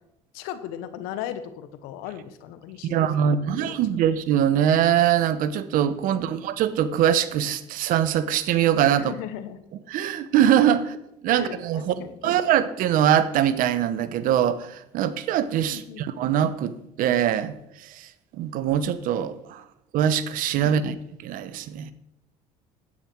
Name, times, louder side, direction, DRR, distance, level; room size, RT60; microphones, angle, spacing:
voice 1, 0.3-3.8 6.1-6.3 9.0-9.6 11.3-12.4 15.7-16.0 20.6-20.8, left 10 dB, 80° left, 12 dB, 1.0 m, -37 dB
voice 2, 2.8-9.1 9.9-11.0 11.2-19.6 19.9-21.0 21.2-21.9, right 10 dB, 65° right, 14 dB, 0.9 m, -23 dB
9.7 x 8.8 x 4.5 m, 0.80 s
supercardioid pair, 90°, 15 cm